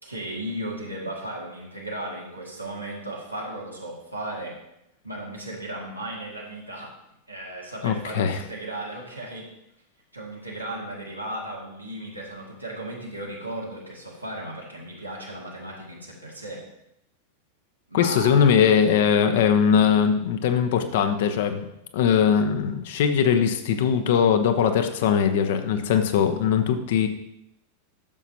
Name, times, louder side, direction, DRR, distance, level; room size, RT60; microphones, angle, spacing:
voice 1, 0.0-4.6 5.0-7.0 7.3-9.5 10.1-16.7 17.9-18.7, right 1 dB, 85° right, -3 dB, 2.0 m, -35 dB
voice 2, 7.8-8.4 17.9-27.1, left 7 dB, 55° left, 8 dB, 0.9 m, -21 dB
12.0 x 7.0 x 2.9 m, 0.83 s
figure-of-eight pair, 90°, 0 cm